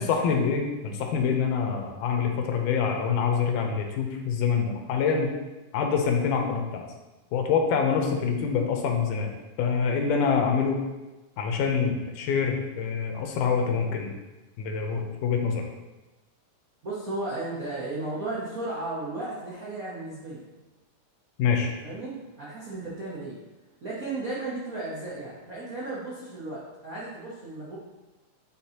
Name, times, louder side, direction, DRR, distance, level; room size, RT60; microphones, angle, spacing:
voice 1, 0.0-5.3 5.7-6.8 7.3-9.3 9.6-10.8 11.4-14.1 14.6-15.6 21.4-21.7, left 6 dB, 90° left, 3 dB, 2.3 m, -25 dB
voice 2, 16.8-20.5 21.8-23.3 23.8-27.8, right 2 dB, 85° right, -7 dB, 0.7 m, -34 dB
9.3 x 4.2 x 2.8 m, 1.1 s
omnidirectional pair, 3.5 m